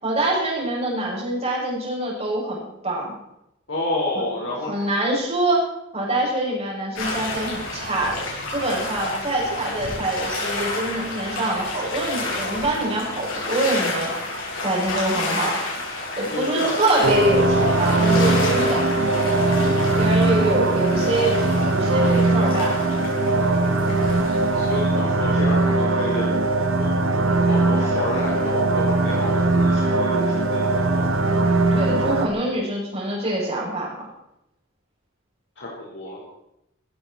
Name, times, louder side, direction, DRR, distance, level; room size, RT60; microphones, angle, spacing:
voice 1, 0.0-3.1 4.7-8.2 8.5-14.1 14.6-15.6 16.2-18.8 19.9-22.8 31.7-33.9, right 1 dB, 30° right, -3 dB, 7.2 m, -25 dB
voice 2, 3.7-4.7 16.3-16.7 20.1-20.5 24.5-27.0 27.5-31.1 35.6-36.2, left 1 dB, 65° left, -4 dB, 4.8 m, -29 dB
sound 1, 7.0-24.8, left 2 dB, 85° left, 7.9 m, -30 dB
sound 2, 17.0-32.3, right 2 dB, 85° right, 1.7 m, -20 dB
18.5 x 15.0 x 4.5 m, 0.84 s
head